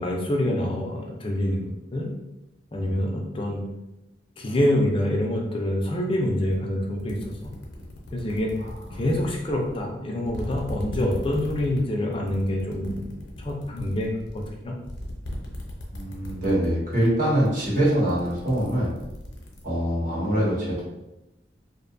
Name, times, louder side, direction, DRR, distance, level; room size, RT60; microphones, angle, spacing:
voice 1, 0.0-1.6 1.9-2.1 2.7-3.6 4.4-7.5 8.1-8.5 8.9-14.8, left 1 dB, 30° left, -1 dB, 0.4 m, -26 dB
voice 2, 2.8-3.1 8.6-9.0 15.9-18.9 19.6-20.9, right 1 dB, 50° right, -6 dB, 1.0 m, -24 dB
sound 1, 6.5-6.6 7.0-9.9 10.2-16.7 16.9-17.2 17.5-19.6, left 1 dB, 75° left, 0.6 m, -38 dB
2.6 x 2.2 x 2.5 m, 0.94 s
head